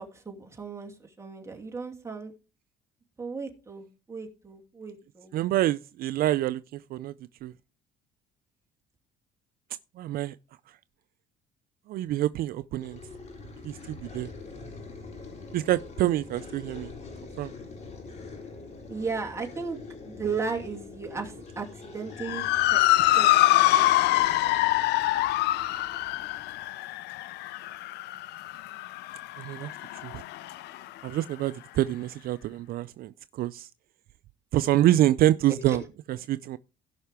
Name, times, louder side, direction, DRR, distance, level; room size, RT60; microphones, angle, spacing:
voice 1, 0.0-2.3 3.2-5.3 18.9-19.8 20.0-22.8 23.2-24.5 35.7-35.8, right 5 dB, 15° right, 2.5 m, -36 dB
voice 2, 5.3-6.6 6.9-7.1 7.4-7.5 10.0-10.3 11.9-13.0 13.6-14.3 15.5-16.9 17.4-17.5 29.4-29.7 30.0-30.1 31.0-33.1 33.4-33.7 34.5-35.8 36.1-36.6, right 14 dB, 60° right, 0.4 m, -26 dB
sound 1, 12.8-26.7, left 4 dB, 45° left, 4.5 m, -45 dB
Motor vehicle (road) / Siren, 22.2-30.8, left 16 dB, 80° left, 0.5 m, -25 dB
17.0 x 5.8 x 3.4 m
cardioid pair, 110°, 17 cm